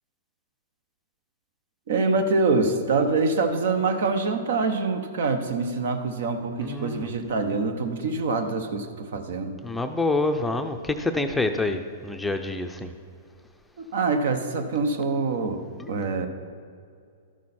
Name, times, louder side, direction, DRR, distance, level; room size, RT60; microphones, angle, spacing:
voice 1, 1.9-9.6 13.8-16.3, right 3 dB, 70° right, 7 dB, 1.0 m, -25 dB
voice 2, 6.6-7.1 9.6-12.9 15.8-15.9, left 2 dB, 5° left, 5 dB, 0.5 m, -27 dB
12.5 x 6.2 x 4.3 m, 2.3 s
hypercardioid pair, 130°, 0 cm